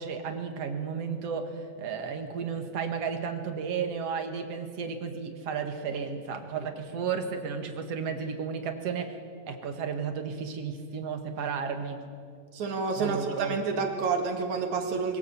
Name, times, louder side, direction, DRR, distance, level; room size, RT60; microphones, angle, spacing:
voice 1, 0.0-9.2 9.5-12.0 12.9-13.6, right 6 dB, 60° right, 6 dB, 2.7 m, -33 dB
voice 2, 12.5-15.2, right 4 dB, 75° right, 4 dB, 3.4 m, -29 dB
23.0 x 16.5 x 8.4 m, 2.2 s
omnidirectional pair, 3.4 m